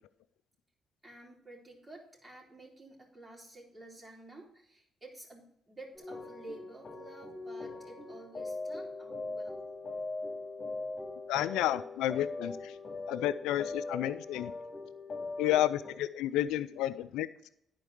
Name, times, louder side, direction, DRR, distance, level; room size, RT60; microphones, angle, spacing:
voice 1, 1.0-9.7, right 2 dB, 25° right, -2 dB, 3.7 m, -51 dB
sound 1, 5.9-15.9, left 3 dB, 40° left, 2.2 m, -40 dB
voice 2, 11.3-12.8 13.1-14.5 15.4-17.3, left 13 dB, 85° left, 14 dB, 0.3 m, -31 dB
10.5 x 4.6 x 6.4 m, 0.74 s
supercardioid pair, 60°, 0 cm